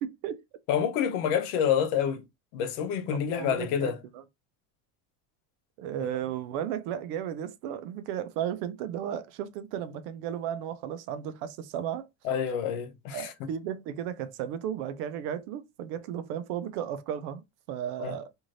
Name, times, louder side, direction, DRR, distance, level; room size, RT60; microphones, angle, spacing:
voice 1, 0.0-0.4 3.1-4.2 5.8-12.1 13.1-17.4 17.7-18.3, right 9 dB, 70° right, 0.6 m, -34 dB
voice 2, 0.7-2.2 2.5-4.0 12.2-13.3 18.0-18.2, left 8 dB, 80° left, 0.8 m, -28 dB
2.6 x 2.5 x 3.1 m
cardioid pair, 180°, 45 cm